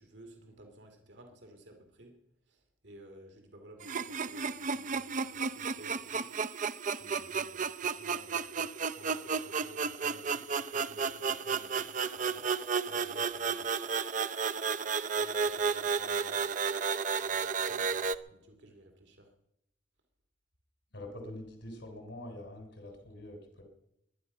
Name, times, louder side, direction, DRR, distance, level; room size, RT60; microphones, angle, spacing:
voice 1, 0.0-2.2 2.5-6.3 7.0-12.5 12.8-13.7 15.1-16.7 17.2-19.3 21.8-21.9, right 1 dB, 70° right, 4 dB, 2.5 m, -55 dB
sound 1, 3.8-18.2, right 5 dB, 45° right, 0.6 m, -33 dB
voice 2, 20.9-23.6, left 1 dB, 90° left, 4 dB, 3.5 m, -45 dB
22.0 x 10.0 x 5.5 m, 0.79 s
head